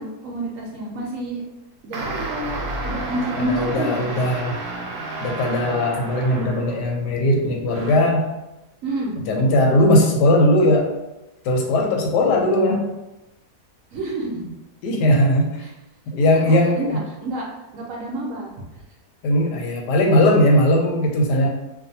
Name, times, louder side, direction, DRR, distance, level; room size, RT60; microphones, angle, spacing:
voice 1, 0.0-1.4 1.8-3.9 8.8-9.1 13.9-14.5 15.1-15.2 15.6-15.7 16.5-17.5 17.7-18.8, right 1 dB, 70° right, -2 dB, 0.8 m, -29 dB
sound 1, 1.9-7.0 7.7-8.2, right 2 dB, 85° right, 1.2 m, -31 dB
voice 2, 3.4-4.6 5.2-8.3 9.3-10.9 11.4-12.9 14.8-15.5 16.1-17.0 19.2-21.5, left 1 dB, 90° left, 1 dB, 1.2 m, -18 dB
2.5 x 2.4 x 2.7 m, 0.97 s
omnidirectional pair, 1.7 m